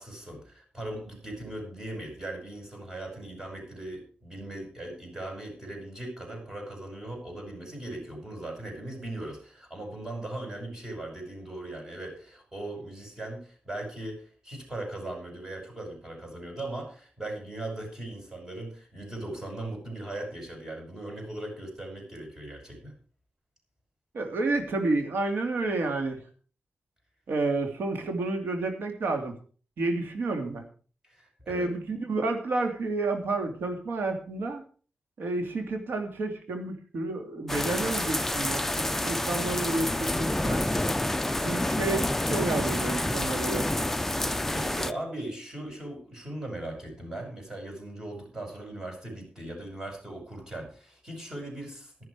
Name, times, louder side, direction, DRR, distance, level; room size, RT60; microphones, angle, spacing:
voice 1, 0.0-14.2 14.4-23.0 31.1-31.7 44.3-52.0, right 1 dB, 15° right, 2 dB, 5.8 m, -39 dB
voice 2, 24.1-26.2 27.3-29.4 29.8-30.7 31.5-34.6 35.2-38.7 39.0-40.6 41.4-43.9, right 2 dB, 80° right, 5 dB, 2.7 m, -30 dB
sound 1, 37.5-44.9, left 1 dB, 10° left, 0.5 m, -28 dB
13.0 x 11.0 x 4.8 m, 0.40 s
wide cardioid pair, 155°, 4 cm